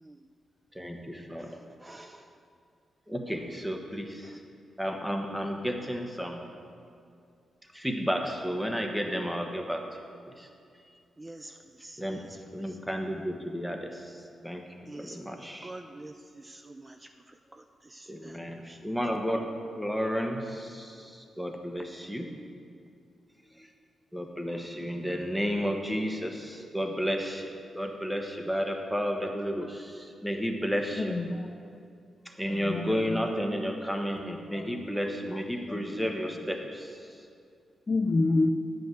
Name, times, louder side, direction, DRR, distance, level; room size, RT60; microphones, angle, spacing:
voice 1, 0.7-1.5 3.1-4.3 4.8-6.4 7.7-9.8 10.4-10.5 12.0-12.2 12.5-13.9 14.4-14.6 14.9-15.7 18.1-19.4 19.7-21.1 21.4-22.2 24.1-27.5 27.7-31.1 32.4-36.9, equal, 5° right, 2 dB, 1.3 m, -32 dB
voice 2, 1.8-2.3 11.2-12.7 14.9-17.0 17.5-18.4 18.6-18.8, right 2 dB, 20° right, 6 dB, 0.4 m, -47 dB
voice 3, 31.0-31.5 32.5-33.1 34.5-34.6 35.7-35.8 37.9-38.5, left 3 dB, 35° left, 7 dB, 0.5 m, -27 dB
9.9 x 5.2 x 7.8 m, 2.3 s
cardioid pair, 70°, 0 cm